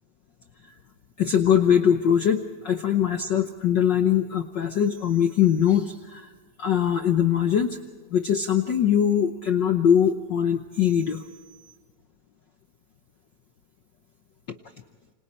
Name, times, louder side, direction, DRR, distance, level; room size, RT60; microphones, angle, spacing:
voice 1, 1.2-6.3 6.6-7.8 8.1-11.2, left 9 dB, 90° left, 6 dB, 0.9 m, -22 dB
28.5 x 26.0 x 4.4 m, 1.5 s
omnidirectional pair, 3.4 m